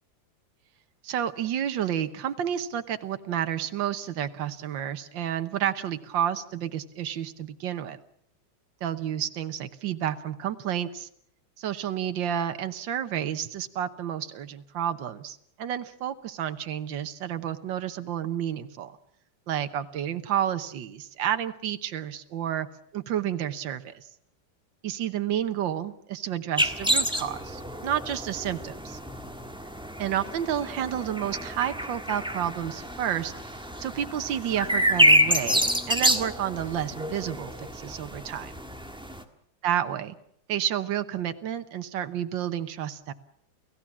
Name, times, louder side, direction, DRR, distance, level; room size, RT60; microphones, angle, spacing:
voice 1, 1.0-8.0 8.8-11.1 11.6-19.0 19.5-22.7 22.9-24.1 24.8-29.0 30.0-38.5 39.6-40.2 40.5-43.1, right 10 dB, 75° right, 10 dB, 1.8 m, -30 dB
sound 1, 26.6-39.2, equal, 5° right, 1.2 m, -27 dB
29.0 x 16.0 x 7.3 m, 0.69 s
omnidirectional pair, 2.1 m